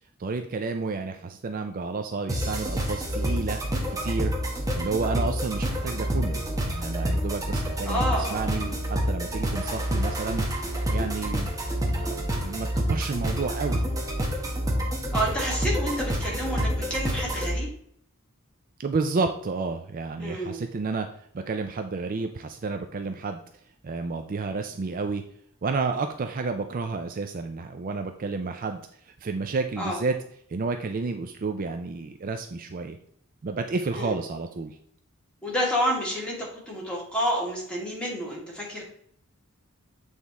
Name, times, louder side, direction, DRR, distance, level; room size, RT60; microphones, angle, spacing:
voice 1, 0.2-3.6 4.0-4.3 4.7-8.0 8.3-10.4 10.9-11.5 11.9-13.9 18.8-21.1 21.3-23.4 23.8-25.2 25.6-30.2 30.5-33.0 33.4-34.8, right 4 dB, 40° right, 6 dB, 0.4 m, -30 dB
sound 1, 2.3-17.5, equal, 15° right, 1.0 m, -28 dB
voice 2, 7.9-8.5 15.1-17.7 20.2-20.6 29.8-30.0 34.0-34.2 35.4-38.8, equal, 5° left, -5 dB, 2.2 m, -29 dB
8.0 x 3.5 x 4.1 m, 0.65 s
head